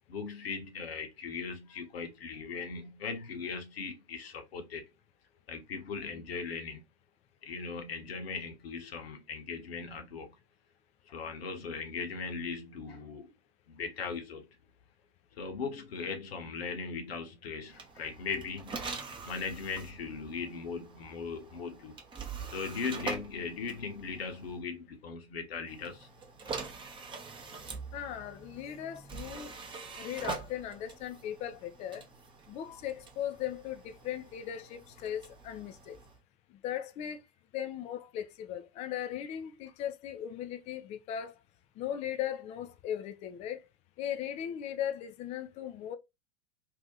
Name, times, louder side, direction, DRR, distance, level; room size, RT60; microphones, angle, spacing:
voice 1, 0.1-4.8 5.5-6.8 7.4-10.3 11.1-13.3 13.7-14.5 15.4-18.7 19.2-22.0 22.5-26.1, left 5 dB, 70° left, 1.1 m, -39 dB
sound 1, 17.7-24.6 25.7-36.2, right 4 dB, 15° right, 0.7 m, -44 dB
voice 2, 27.9-29.5 30.0-32.1 32.5-36.0 36.5-37.2 37.5-41.4 41.8-43.7 44.0-46.0, left 10 dB, 20° left, 0.3 m, -38 dB
2.8 x 2.4 x 3.7 m
figure-of-eight pair, 90°, 32 cm